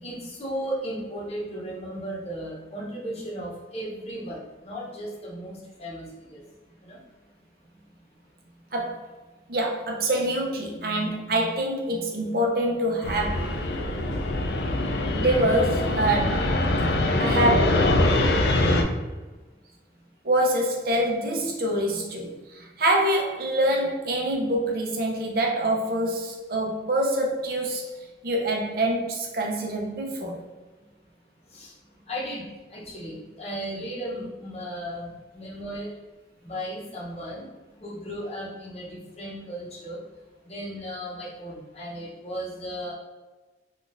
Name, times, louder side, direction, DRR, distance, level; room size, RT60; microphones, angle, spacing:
voice 1, 0.0-6.4 6.8-7.0 31.5-31.7 32.1-35.9 36.4-37.5 37.8-40.0 40.5-42.9, equal, 35° left, -5 dB, 0.8 m, -35 dB
voice 2, 8.7-9.1 9.5-13.7 14.1-14.2 15.1-16.6 17.2-17.9 20.2-30.4, right 1 dB, 55° right, 0 dB, 0.6 m, -25 dB
Fixed-wing aircraft airplane, 13.0-18.8, left 1 dB, 65° left, 0.4 m, -23 dB
3.6 x 2.4 x 2.5 m, 1.2 s
head